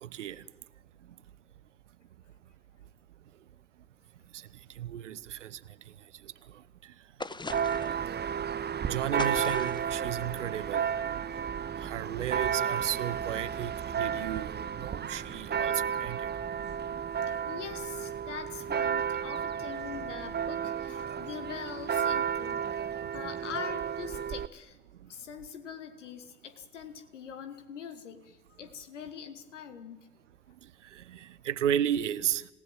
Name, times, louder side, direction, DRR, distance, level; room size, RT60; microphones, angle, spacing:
voice 1, 0.0-0.4 4.3-4.4 4.8-5.6 6.2-6.3 8.8-10.9 11.8-16.2 30.9-32.5, right 10 dB, 80° right, 18 dB, 0.7 m, -33 dB
sound 1, 7.2-8.0 9.2-9.9, left 3 dB, 10° left, 0.9 m, -39 dB
Church bell, 7.5-24.5, right 8 dB, 30° right, 0.8 m, -32 dB
voice 2, 17.5-24.8 25.1-30.0, left 7 dB, 80° left, 9 dB, 1.5 m, -43 dB
26.5 x 18.0 x 7.8 m, 1.2 s
figure-of-eight pair, 40°, 36 cm